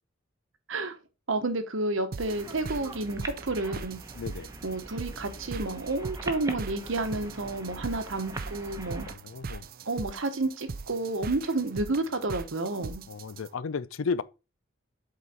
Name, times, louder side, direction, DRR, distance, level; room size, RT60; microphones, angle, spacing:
voice 1, 1.3-4.0 4.6-9.1 9.9-13.0, right 2 dB, 65° right, 1.1 m, -30 dB
sound 1, 2.1-13.5, right 4 dB, 45° right, 0.4 m, -41 dB
sound 2, 2.3-9.1, right 1 dB, 15° right, 0.9 m, -42 dB
voice 2, 4.1-4.5 9.1-9.7 13.1-14.2, left 5 dB, 75° left, 0.5 m, -33 dB
7.9 x 4.1 x 4.1 m
head